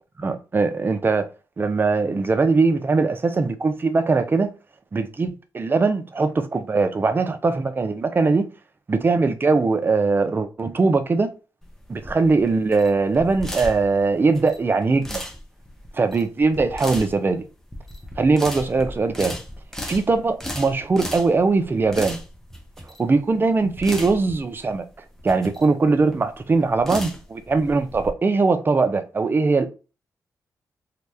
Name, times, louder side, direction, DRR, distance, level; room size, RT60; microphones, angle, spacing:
voice 1, 0.2-1.3 1.6-4.5 4.9-8.5 8.9-11.3 11.9-15.2 15.9-17.4 18.2-19.4 19.9-22.2 23.0-24.8 25.2-29.7, right 3 dB, 35° right, 0.5 m, -21 dB
sound 1, 11.6-28.1, left 1 dB, 5° left, 0.7 m, -36 dB
2.8 x 2.2 x 3.3 m
cardioid pair, 90°, 7 cm